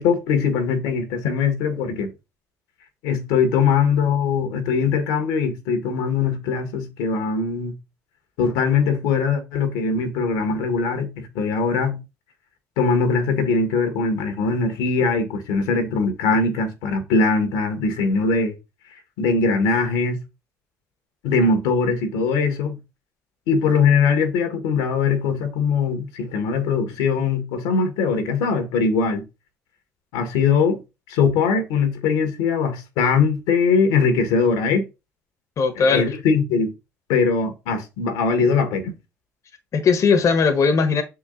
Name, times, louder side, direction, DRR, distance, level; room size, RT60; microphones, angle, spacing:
voice 1, 0.0-2.1 3.0-7.7 8.4-12.0 12.8-18.5 19.2-20.2 21.2-22.8 23.5-29.2 30.1-30.8 31.1-34.9 35.7-36.7 37.1-38.9, left 5 dB, 80° left, 1.5 m, -21 dB
voice 2, 35.6-36.0 39.7-41.0, left 5 dB, 50° left, 1.2 m, -18 dB
6.3 x 4.6 x 3.8 m
hypercardioid pair, 65°, 7 cm